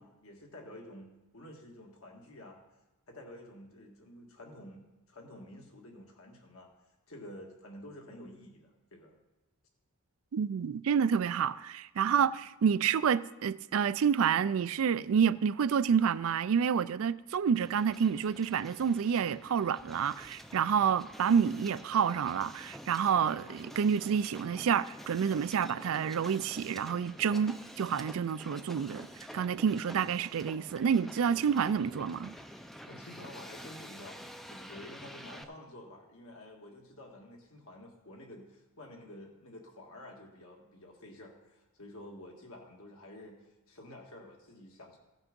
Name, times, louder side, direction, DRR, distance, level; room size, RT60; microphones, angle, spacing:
voice 1, 0.0-2.6 3.1-6.7 7.1-9.2 12.0-12.3 32.9-45.0, left 1 dB, 70° left, 1.8 m, -50 dB
voice 2, 10.3-12.3 12.6-29.1 29.3-32.3, right 7 dB, 70° right, 0.4 m, -28 dB
Hiss, 17.5-35.4, equal, ahead, 0.4 m, -49 dB
15.5 x 6.1 x 5.3 m
head